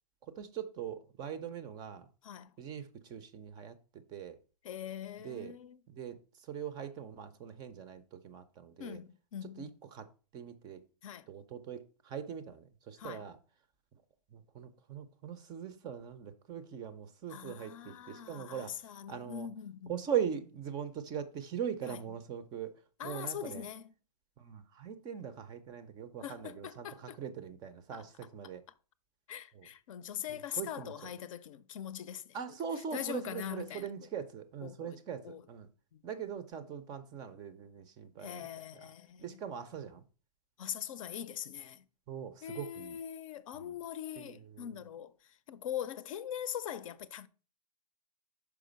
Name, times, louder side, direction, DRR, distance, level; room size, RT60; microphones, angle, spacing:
voice 1, 0.2-2.1 2.6-3.8 4.1-4.4 5.2-5.5 5.9-9.0 9.4-10.1 10.3-10.8 11.3-13.4 14.3-19.5 19.9-22.7 23.0-23.7 24.4-28.6 29.5-29.7 30.3-31.1 32.3-35.7 36.0-38.5 38.7-38.9 39.2-40.0 42.1-43.0 43.6-43.7 44.2-44.7, right 8 dB, 20° right, 0.5 m, -41 dB
voice 2, 4.6-5.8 8.8-9.7 11.0-11.3 13.0-13.2 17.3-19.9 21.9-22.0 23.0-23.9 26.2-27.2 27.9-28.0 29.3-32.4 32.9-33.9 34.6-35.0 35.2-35.4 35.9-36.0 38.2-39.4 40.6-41.8 42.4-47.3, left 10 dB, 50° left, 0.6 m, -42 dB
5.9 x 4.7 x 5.1 m
hypercardioid pair, 145°, 21 cm